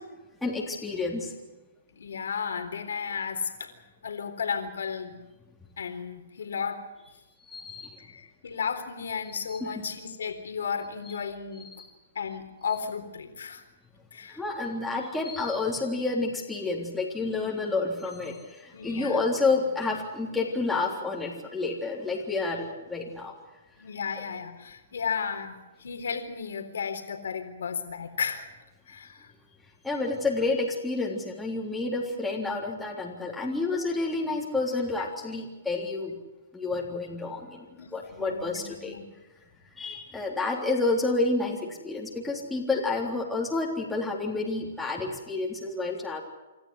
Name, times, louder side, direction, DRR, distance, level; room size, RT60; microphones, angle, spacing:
voice 1, 0.4-1.3 7.5-8.0 9.6-9.8 11.8-11.9 14.3-23.3 29.8-36.1 36.5-37.7 37.9-39.0 39.8-46.2, left 3 dB, 5° left, -3 dB, 3.6 m, -29 dB
voice 2, 1.9-3.7 4.0-5.2 5.8-6.8 8.0-11.7 12.2-13.6 14.1-14.4 18.7-19.2 23.8-28.5 28.9-29.3 37.8-39.0 42.7-42.8, left 6 dB, 80° left, 6 dB, 3.8 m, -34 dB
27.0 x 13.5 x 9.8 m, 1.1 s
hypercardioid pair, 140°, 0 cm